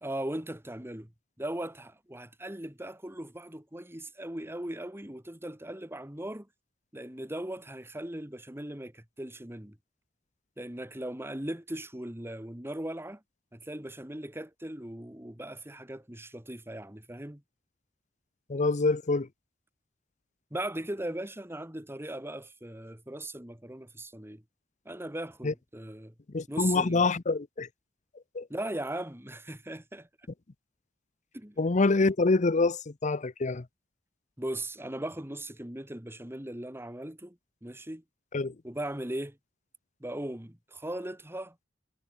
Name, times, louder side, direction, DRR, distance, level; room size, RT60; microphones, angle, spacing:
voice 1, 0.0-1.1 1.4-6.5 6.9-9.8 10.6-13.2 13.5-17.4 20.5-24.4 24.9-26.1 26.5-27.1 28.5-30.1 31.3-31.6 34.4-38.0 38.6-39.4 40.0-41.7, right 1 dB, 10° right, 2.0 m, -38 dB
voice 2, 18.5-19.3 25.4-25.5 26.3-27.7 28.3-28.5 31.6-33.6 38.3-38.5, left 3 dB, 40° left, 0.7 m, -26 dB
head